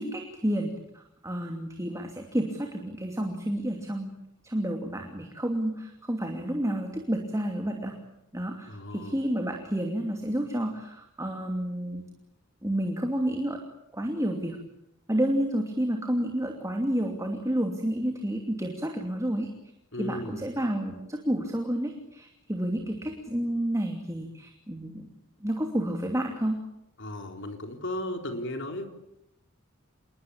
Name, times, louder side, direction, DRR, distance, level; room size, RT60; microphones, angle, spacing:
voice 1, 0.0-4.1 4.4-7.9 8.3-12.0 12.6-13.6 13.9-14.6 15.1-19.5 20.0-25.1 25.4-26.6, right 1 dB, 15° right, 2 dB, 2.7 m, -30 dB
voice 2, 8.7-9.2 19.9-20.5 27.0-28.8, left 1 dB, 60° left, 5 dB, 4.0 m, -35 dB
27.5 x 21.5 x 8.8 m, 0.83 s
head